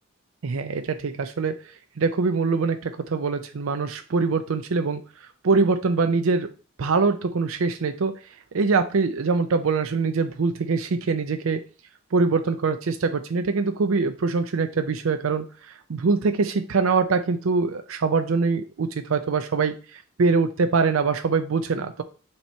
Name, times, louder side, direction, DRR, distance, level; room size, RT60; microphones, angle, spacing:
voice 1, 0.4-1.6 2.0-6.5 6.8-8.1 8.5-11.6 12.1-22.0, right 4 dB, 90° right, 8 dB, 0.5 m, -23 dB
8.6 x 2.9 x 4.5 m, 0.37 s
head